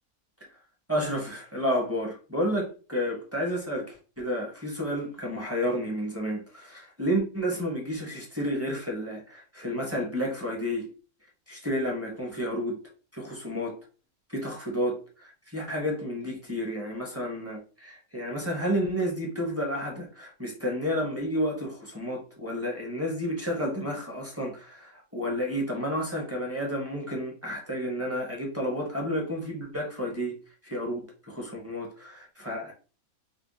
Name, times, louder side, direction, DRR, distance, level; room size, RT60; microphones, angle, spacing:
voice 1, 0.9-10.9 11.5-12.8 13.1-13.8 14.3-30.4 30.6-32.7, equal, 15° right, 0.7 m, -31 dB
5.4 x 2.1 x 2.6 m
omnidirectional pair, 1.5 m